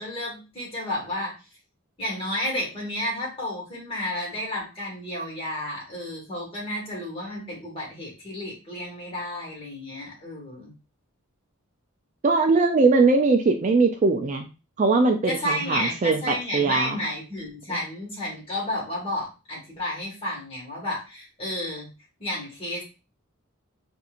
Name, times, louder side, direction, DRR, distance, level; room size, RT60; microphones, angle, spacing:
voice 1, 0.0-1.3 2.0-10.7 15.2-21.9 22.2-22.8, left 1 dB, 25° left, -3 dB, 1.6 m, -31 dB
voice 2, 12.2-14.5 14.8-17.0 17.7-17.8, right 3 dB, 35° right, 4 dB, 0.4 m, -21 dB
4.2 x 2.6 x 2.4 m, 0.30 s
head